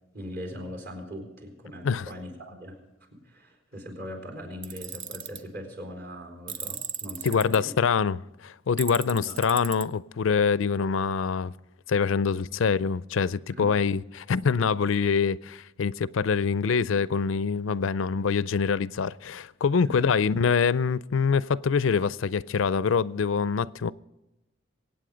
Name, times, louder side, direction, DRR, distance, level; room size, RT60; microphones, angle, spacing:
voice 1, 0.1-2.8 3.1-7.7 9.1-9.4 13.6-13.7 19.8-20.1, equal, 50° right, 4.1 m, -40 dB
Tools, 4.6-5.4 6.5-7.6 8.8-9.8, right 8 dB, 70° right, 0.9 m, -36 dB
voice 2, 7.2-11.5 11.9-23.9, left 5 dB, 80° left, 0.4 m, -25 dB
24.0 x 8.9 x 5.1 m
head